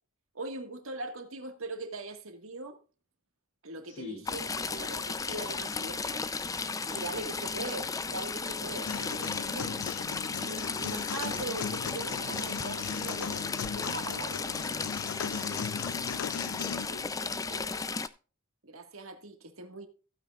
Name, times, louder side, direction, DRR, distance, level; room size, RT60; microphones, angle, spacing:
voice 1, 0.4-2.8 3.6-6.3 6.9-9.8 10.4-14.6 18.6-19.9, right 2 dB, 75° right, 1.7 m, -41 dB
voice 2, 3.9-4.3 15.2-18.1, left 1 dB, 60° left, 2.9 m, -47 dB
Stream / Trickle dribble, 4.3-18.1, left 4 dB, 15° left, 0.4 m, -35 dB
sound 1, 8.9-16.9, left 7 dB, 80° left, 0.4 m, -38 dB
15.5 x 9.0 x 2.4 m
head